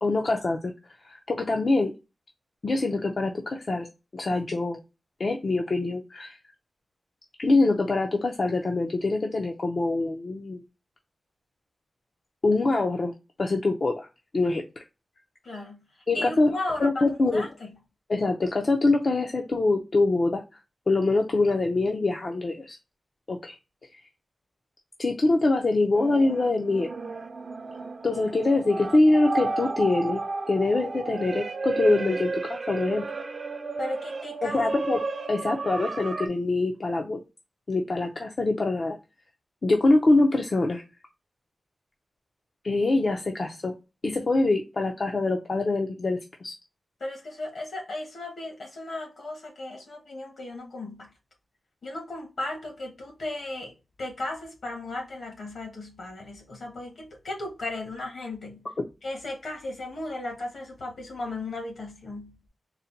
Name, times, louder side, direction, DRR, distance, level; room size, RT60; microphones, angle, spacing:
voice 1, 0.0-1.9 2.6-3.9 4.1-4.8 5.2-6.4 7.4-10.6 12.4-13.1 13.4-14.1 14.3-14.8 16.1-16.5 16.8-17.5 18.1-20.4 20.9-22.8 23.3-23.6 25.0-26.9 28.0-33.0 34.4-35.0 35.3-37.2 37.7-39.0 39.6-40.8 42.6-43.7 44.0-46.5, left 2 dB, 40° left, 0.5 m, -24 dB
voice 2, 15.4-15.8 16.1-17.8 33.8-34.6 47.0-51.1 51.8-53.7 54.0-58.7 59.0-62.4, left 2 dB, 60° left, 1.5 m, -35 dB
sound 1, 25.9-36.3, right 3 dB, 45° right, 0.4 m, -33 dB
4.0 x 2.1 x 3.9 m
wide cardioid pair, 170°, 0 cm